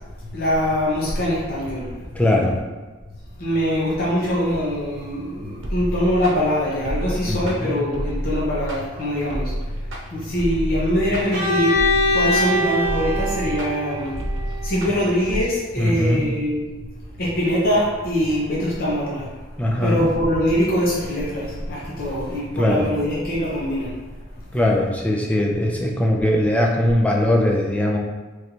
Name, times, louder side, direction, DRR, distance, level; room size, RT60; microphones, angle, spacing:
voice 1, 0.3-2.0 3.4-9.5 10.1-11.8 12.1-14.2 14.6-16.7 17.2-19.3 19.8-23.9, equal, 50° left, -7 dB, 0.8 m, -23 dB
voice 2, 2.1-2.6 7.3-7.7 15.8-16.2 19.6-20.1 22.6-22.9 24.5-28.0, left 1 dB, 5° left, -1 dB, 0.4 m, -20 dB
sound 1, 5.6-15.4, equal, 85° right, 0.8 m, -29 dB
Bowed string instrument, 11.3-15.1, left 1 dB, 50° right, 1.0 m, -23 dB
3.2 x 2.6 x 4.5 m, 1.3 s
head